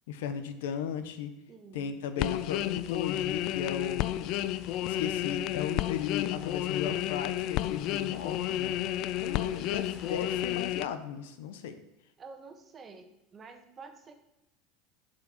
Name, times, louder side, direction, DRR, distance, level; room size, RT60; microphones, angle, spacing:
voice 1, 0.1-1.3 1.7-4.1 4.8-8.7 9.2-11.7, left 8 dB, 80° left, 10 dB, 0.9 m, -36 dB
voice 2, 1.5-1.9 12.2-14.2, right 4 dB, 30° right, 6 dB, 1.4 m, -49 dB
sound 1, 2.2-10.9, left 13 dB, 60° left, 0.4 m, -31 dB
sound 2, 3.1-10.6, left 1 dB, 10° left, 3.1 m, -51 dB
7.5 x 5.3 x 7.2 m, 0.89 s
hypercardioid pair, 95°, 0 cm